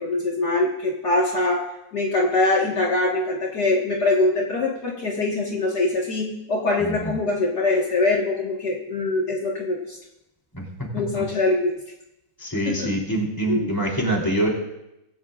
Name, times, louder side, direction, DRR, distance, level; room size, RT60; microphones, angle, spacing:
voice 1, 0.0-1.6 1.9-10.0 10.9-11.7 12.6-12.9 13.5-13.7, left 2 dB, 50° left, -3 dB, 2.2 m, -23 dB
voice 2, 12.4-14.5, right 1 dB, 10° left, -1 dB, 3.3 m, -25 dB
24.5 x 14.5 x 2.5 m, 0.90 s
omnidirectional pair, 2.2 m